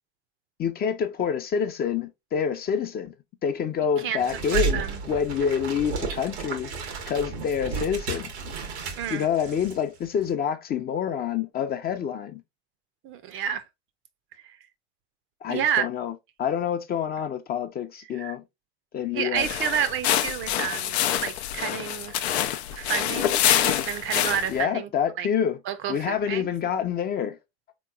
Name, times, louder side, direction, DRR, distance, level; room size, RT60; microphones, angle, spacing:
voice 1, 0.6-3.1 3.4-4.8 5.1-6.7 7.1-8.3 9.1-12.4 15.4-16.1 16.4-18.4 18.9-19.5 24.5-25.6 25.9-27.4, left 7 dB, 30° left, 0.5 m, -27 dB
sound 1, 4.2-9.8 10.1-10.3, right 5 dB, 90° right, 0.9 m, -32 dB
voice 2, 4.5-5.0 9.0-9.3 13.0-13.6 15.5-15.8 18.1-18.3 19.1-22.2 22.7-24.9 25.2-25.3 25.7-26.5, right 9 dB, 40° right, 0.5 m, -30 dB
sound 2, 19.4-24.6, left 11 dB, 85° left, 0.5 m, -26 dB
3.6 x 3.0 x 2.2 m
hypercardioid pair, 90°, 32 cm